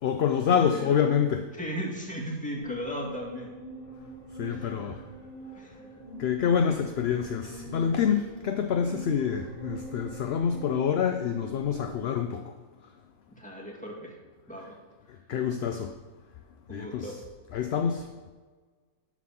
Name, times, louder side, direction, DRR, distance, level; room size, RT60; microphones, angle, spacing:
voice 1, 0.0-1.4 4.3-5.0 6.2-12.5 15.3-15.9 16.7-17.2 17.5-18.3, left 7 dB, 60° left, 6 dB, 0.7 m, -27 dB
voice 2, 1.5-3.5 4.5-5.0 5.5-5.9 13.4-14.1 14.5-14.8 16.7-17.2, equal, 5° left, -3 dB, 1.8 m, -37 dB
sound 1, 2.6-12.0, right 1 dB, 30° right, 1.8 m, -43 dB
11.5 x 4.1 x 5.7 m, 1.4 s
omnidirectional pair, 1.5 m